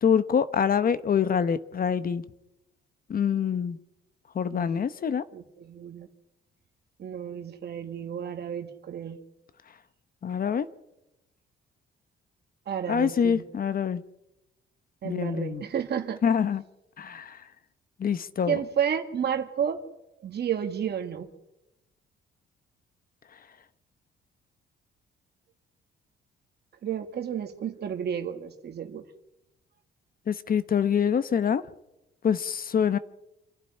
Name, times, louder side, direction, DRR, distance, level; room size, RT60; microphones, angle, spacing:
voice 1, 0.0-2.2 3.1-3.8 4.3-5.2 10.2-10.7 12.9-14.0 15.0-15.6 16.2-16.6 17.0-17.4 18.0-18.6 30.3-31.6 32.2-33.0, left 7 dB, 45° left, 1.1 m, -25 dB
voice 2, 5.3-6.1 7.0-9.2 12.7-13.4 15.0-16.2 18.5-19.8 20.2-21.3 26.8-29.0, right 8 dB, 55° right, 1.8 m, -31 dB
27.0 x 11.5 x 9.9 m
cardioid pair, 90°, 20 cm